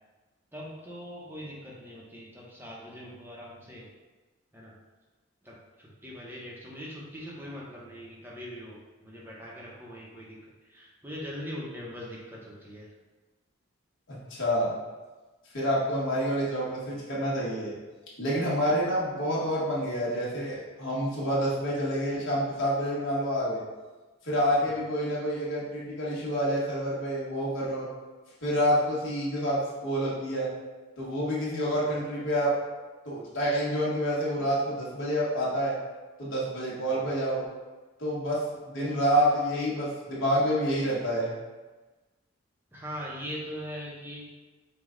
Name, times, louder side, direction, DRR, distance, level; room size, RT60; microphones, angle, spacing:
voice 1, 0.5-3.8 4.5-4.7 5.4-10.4 10.6-12.9 24.6-24.8 36.8-37.0 42.7-44.3, equal, 10° right, -5 dB, 0.7 m, -41 dB
voice 2, 14.1-14.7 15.5-17.8 18.2-23.6 24.2-27.9 28.4-30.5 31.0-32.5 33.0-35.7 36.2-37.5 38.0-41.3, equal, 65° left, -6 dB, 1.4 m, -28 dB
5.0 x 2.3 x 3.7 m, 1.2 s
head